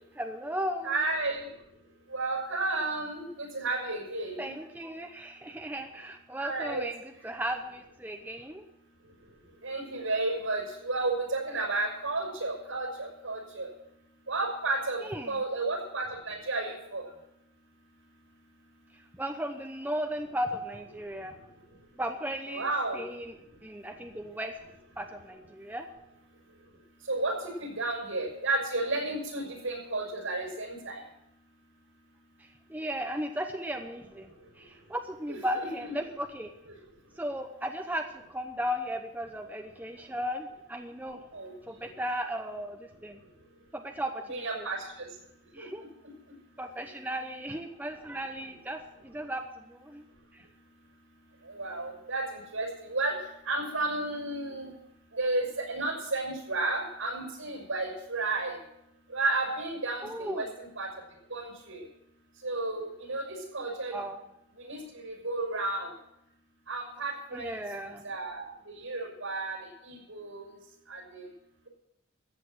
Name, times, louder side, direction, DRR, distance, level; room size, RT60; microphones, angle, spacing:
voice 1, 0.2-1.0 4.4-8.6 15.0-15.4 19.1-21.3 22.0-23.3 23.6-24.5 25.0-25.9 32.4-36.5 37.2-41.2 41.7-43.2 43.7-44.7 45.5-45.8 46.6-50.0 50.3-50.4 60.0-60.5 63.9-64.2 67.3-68.1, equal, 10° right, 4 dB, 0.8 m, -36 dB
voice 2, 0.8-1.4 2.1-4.4 6.4-6.9 9.6-13.7 14.3-15.0 15.3-17.0 22.5-23.0 27.1-27.3 27.6-31.0 35.3-35.7 41.3-41.5 44.3-45.1 45.6-45.7 51.5-53.1 53.5-54.7 55.1-58.6 59.1-60.9 61.3-61.8 62.4-64.0 64.6-65.9 66.7-67.5 68.0-68.5 68.8-69.6 69.8-70.5 70.9-71.3, right 2 dB, 80° right, 1 dB, 6.3 m, -32 dB
14.5 x 8.4 x 7.6 m, 0.82 s
head